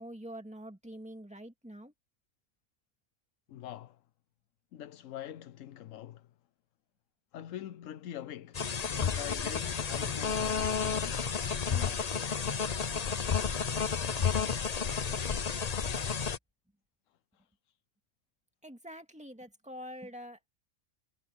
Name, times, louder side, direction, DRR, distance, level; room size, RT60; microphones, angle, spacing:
voice 1, 0.0-1.9 18.6-20.4, equal, 5° right, 2.1 m, -45 dB
voice 2, 3.5-4.0 4.7-6.3 7.3-11.4 11.6-12.1 17.3-17.4, left 11 dB, 90° left, 1.1 m, -44 dB
sound 1, 8.5-16.4, left 6 dB, 35° left, 0.8 m, -31 dB
omnidirectional pair, 1.3 m